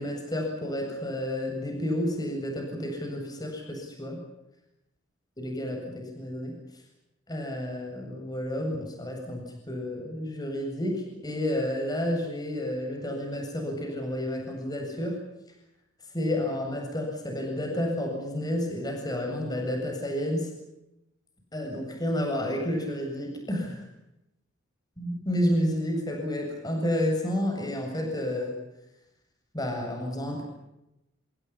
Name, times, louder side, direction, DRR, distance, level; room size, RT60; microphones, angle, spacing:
voice 1, 0.0-4.2 5.4-6.5 7.3-15.2 16.1-20.5 21.5-23.9 25.0-28.6 29.5-30.4, left 1 dB, 20° left, 2 dB, 7.8 m, -30 dB
28.5 x 28.0 x 5.9 m, 0.87 s
head